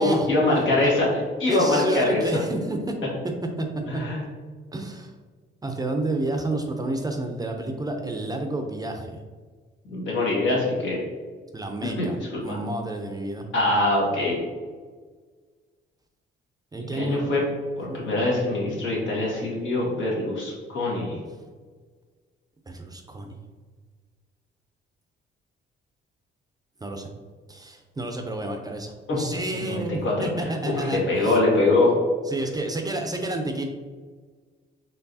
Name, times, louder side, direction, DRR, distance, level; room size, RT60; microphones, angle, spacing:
voice 1, 0.0-2.2 3.9-4.2 9.9-11.0 12.0-12.1 12.5-12.6 13.5-14.4 16.8-17.4 17.8-21.2 29.1-29.2 29.5-30.3 30.6-32.0, left 2 dB, 70° left, -4 dB, 1.5 m, -23 dB
voice 2, 1.5-2.9 3.6-3.7 4.7-5.1 5.6-9.2 11.5-13.4 16.7-17.2 17.9-18.1 22.7-23.4 26.8-27.1 27.5-31.4 32.3-33.6, right 2 dB, 20° right, 4 dB, 0.5 m, -30 dB
4.6 x 3.2 x 2.7 m, 1.5 s
cardioid pair, 90°, 20 cm